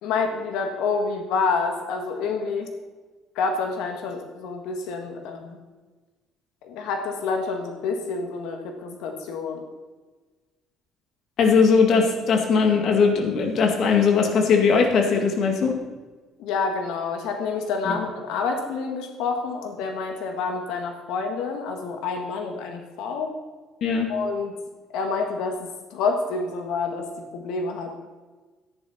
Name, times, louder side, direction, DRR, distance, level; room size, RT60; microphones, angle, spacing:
voice 1, 0.0-2.7 3.4-5.6 6.6-9.6 16.4-23.4 24.1-24.5 24.9-27.1 27.3-28.0, left 4 dB, 80° left, 4 dB, 1.8 m, -28 dB
voice 2, 11.4-15.8 17.9-18.0 23.8-24.1, left 5 dB, 45° left, 2 dB, 1.9 m, -19 dB
13.5 x 10.5 x 4.3 m, 1.3 s
cardioid pair, 175°, 0 cm